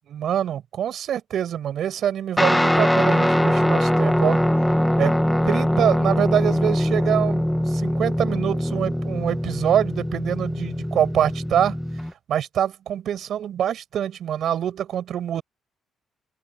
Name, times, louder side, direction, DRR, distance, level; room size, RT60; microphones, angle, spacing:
voice 1, 0.1-4.4 5.0-5.2 5.4-11.8 12.3-15.4, right 10 dB, 70° right, 6.9 m, -25 dB
Guitar, 2.4-12.1, equal, 5° left, 2.1 m, -22 dB
open air
cardioid pair, 90°, 0 cm